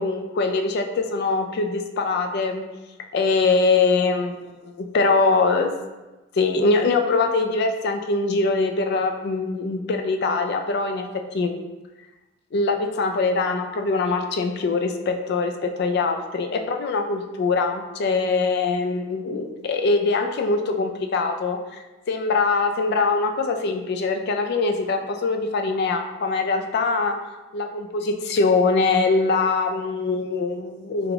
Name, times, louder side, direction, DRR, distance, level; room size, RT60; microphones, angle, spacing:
voice 1, 0.0-2.6 3.1-5.8 6.4-11.5 12.5-27.2 27.5-31.1, left 3 dB, 50° left, 5 dB, 0.3 m, -23 dB
3.3 x 2.5 x 3.3 m, 1.1 s
head